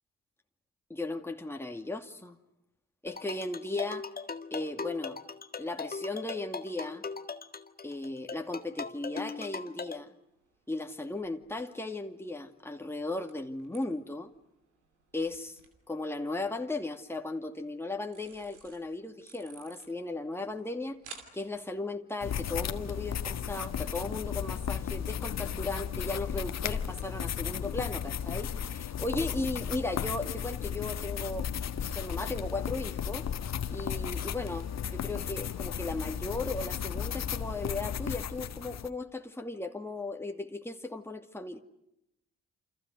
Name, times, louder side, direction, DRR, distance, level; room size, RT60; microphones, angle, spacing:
voice 1, 0.9-2.4 3.0-4.1 4.5-5.2 5.6-7.0 7.8-10.1 10.7-14.3 15.1-15.6 15.9-21.0 21.3-31.5 31.9-33.3 33.7-41.6, left 2 dB, 5° left, 4 dB, 2.5 m, -36 dB
sound 1, 3.1-10.0, left 4 dB, 25° left, 1.8 m, -39 dB
sound 2, 10.2-24.3, right 5 dB, 90° right, 3.0 m, -58 dB
sound 3, 22.2-38.9, left 8 dB, 50° left, 1.6 m, -35 dB
28.5 x 28.0 x 6.5 m, 0.82 s
hypercardioid pair, 45°, 34 cm